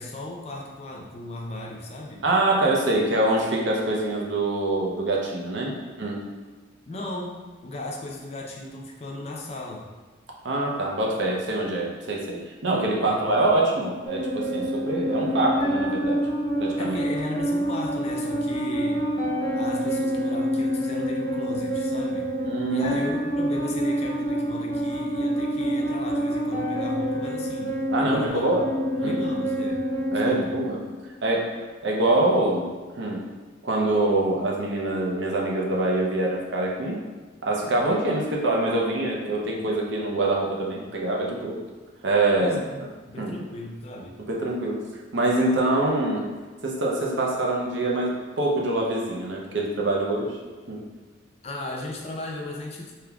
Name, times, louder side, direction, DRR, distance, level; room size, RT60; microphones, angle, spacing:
voice 1, 0.0-2.2 6.9-9.9 13.1-13.4 16.8-19.0 19.6-22.3 22.7-27.7 28.0-29.8 30.2-30.5 42.4-44.1 51.4-52.9, left 1 dB, 30° left, 0 dB, 0.4 m, -36 dB
voice 2, 2.2-6.2 10.4-16.2 16.6-16.9 22.4-23.0 27.9-28.7 29.0-29.2 30.1-30.8 31.2-31.5 31.8-32.7 33.0-33.2 33.6-37.0 37.4-41.6 42.0-42.6 43.2-43.3 44.3-44.8 45.1-46.3 46.6-50.4 50.7-50.8, right 2 dB, 65° right, -1 dB, 0.5 m, -24 dB
sound 1, 14.0-31.0, equal, ahead, 0.8 m, -27 dB
3.5 x 2.7 x 2.3 m, 1.3 s
head